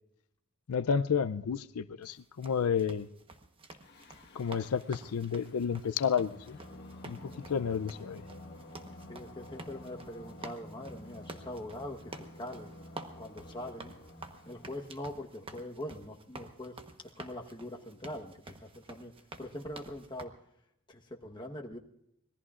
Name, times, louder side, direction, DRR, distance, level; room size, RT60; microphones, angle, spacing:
voice 1, 0.7-3.1 4.3-6.6 7.0-7.2 7.5-8.2, left 6 dB, 80° left, 12 dB, 0.4 m, -31 dB
sound 1, 2.0-20.2, right 2 dB, 25° right, 1.0 m, -50 dB
Singing, 3.8-15.1, left 1 dB, 50° left, 1.5 m, -51 dB
voice 2, 9.1-12.7 13.2-13.9 14.4-16.8 17.2-19.1 19.4-20.3 20.9-21.8, left 1 dB, 20° left, 2 dB, 1.2 m, -42 dB
25.5 x 19.5 x 2.5 m, 0.78 s
head